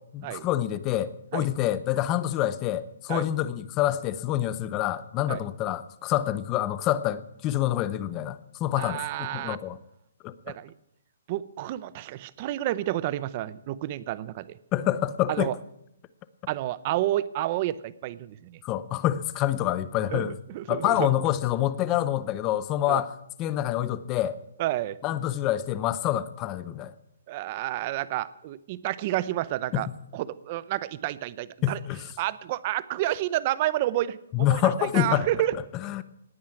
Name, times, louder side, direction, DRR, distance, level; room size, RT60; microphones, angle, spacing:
voice 1, 0.1-9.8 10.2-10.5 14.7-15.5 18.6-20.4 20.7-23.1 23.4-24.4 25.0-26.9 29.7-30.0 31.6-32.1 34.3-35.3 35.7-36.0, left 13 dB, 15° left, 0.6 m, -27 dB
voice 2, 8.8-9.6 10.5-10.7 11.3-14.5 15.3-15.5 16.5-18.6 20.1-21.1 22.9-23.0 24.6-25.0 27.3-29.9 30.1-31.8 32.2-35.6, right 14 dB, 25° right, 0.7 m, -30 dB
19.0 x 9.4 x 7.7 m
hypercardioid pair, 175°, 0 cm